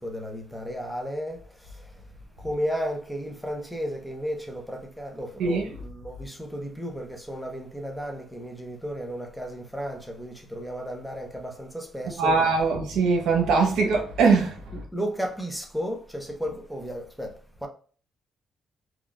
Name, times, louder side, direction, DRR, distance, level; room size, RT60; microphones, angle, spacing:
voice 1, 0.0-1.9 2.4-12.5 14.7-17.3 17.6-17.7, equal, ahead, 0.7 m, -34 dB
voice 2, 12.2-14.6, right 4 dB, 80° right, 0.8 m, -21 dB
3.6 x 2.3 x 2.2 m
cardioid pair, 90°, 0 cm